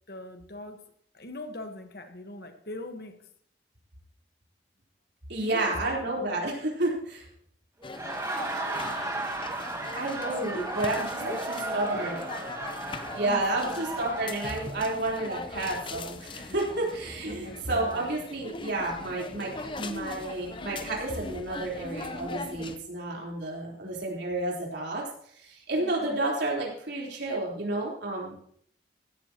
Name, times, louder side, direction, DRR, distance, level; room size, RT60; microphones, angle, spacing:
voice 1, 0.1-0.8 1.1-3.2 5.4-6.4 10.4-10.8 11.2-12.1 13.2-13.9 17.3-18.1 25.8-26.1, left 1 dB, 60° left, 7 dB, 1.4 m, -41 dB
voice 2, 5.3-7.3 9.9-12.2 13.1-25.1 25.4-28.3, right 2 dB, 75° right, -2 dB, 3.9 m, -31 dB
sound 1, 7.8-22.8, left 3 dB, 30° left, 0.7 m, -40 dB
Laughter, 7.8-14.7, right 2 dB, 15° right, 1.3 m, -35 dB
16.0 x 12.5 x 3.0 m, 0.64 s
head